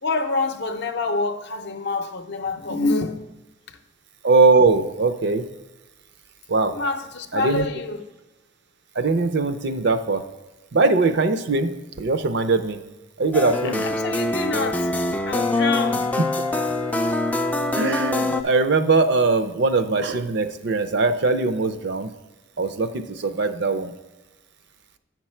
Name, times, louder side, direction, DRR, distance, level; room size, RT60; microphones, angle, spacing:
voice 1, 0.0-3.3 6.7-8.0 13.6-15.0 15.2-16.1 16.7-16.8, left 3 dB, 60° left, 0.6 m, -27 dB
voice 2, 4.2-5.4 6.5-6.7 7.3-7.6 9.0-10.2 10.7-12.8 13.2-13.8 17.8-22.1 22.6-23.9, right 3 dB, 60° right, 0.5 m, -21 dB
sound 1, 13.3-18.4, left 2 dB, 10° left, 0.3 m, -24 dB
8.0 x 6.0 x 4.4 m
head